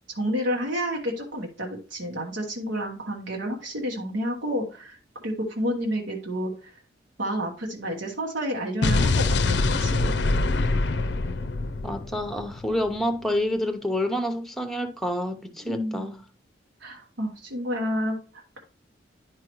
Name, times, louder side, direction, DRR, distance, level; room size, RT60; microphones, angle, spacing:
voice 1, 0.1-5.0 5.2-6.8 7.2-10.1 15.6-16.1 16.8-18.6, equal, 80° right, 1.2 m, -30 dB
Explosion, 8.8-12.9, left 3 dB, 70° left, 0.5 m, -24 dB
voice 2, 11.8-16.2, left 1 dB, ahead, 0.7 m, -28 dB
11.0 x 4.7 x 3.0 m
head